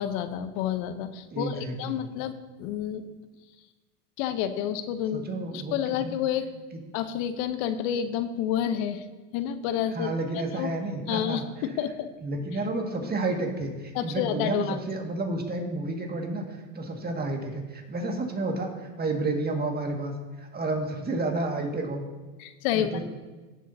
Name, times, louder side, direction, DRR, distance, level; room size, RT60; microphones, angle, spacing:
voice 1, 0.0-3.1 4.2-5.2 5.5-6.5 6.9-9.1 9.3-10.7 11.1-12.1 13.9-14.8 22.4-22.9, left 10 dB, 55° left, 11 dB, 0.9 m, -29 dB
voice 2, 1.3-2.0 5.1-6.1 9.9-11.4 12.2-18.7 19.0-22.0 22.7-23.0, right 2 dB, 20° right, 2 dB, 1.8 m, -31 dB
17.0 x 7.4 x 2.7 m, 1.3 s
hypercardioid pair, 105°, 49 cm